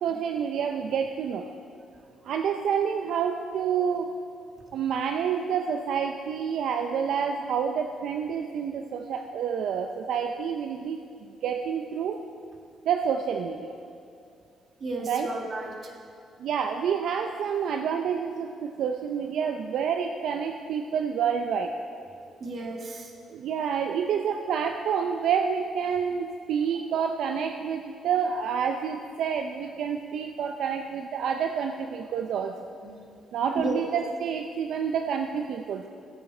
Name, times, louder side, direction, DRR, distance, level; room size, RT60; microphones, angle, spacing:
voice 1, 0.0-1.5 2.2-4.1 4.7-11.0 11.4-12.2 12.9-13.7 15.0-15.3 16.4-21.7 23.3-32.5 33.3-35.9, right 7 dB, 75° right, 5 dB, 0.5 m, -28 dB
voice 2, 14.8-15.8 22.4-23.1 32.8-33.0 33.6-33.8, right 2 dB, 45° right, 1 dB, 1.8 m, -33 dB
15.0 x 8.7 x 4.4 m, 2.4 s
cardioid pair, 90°, 0 cm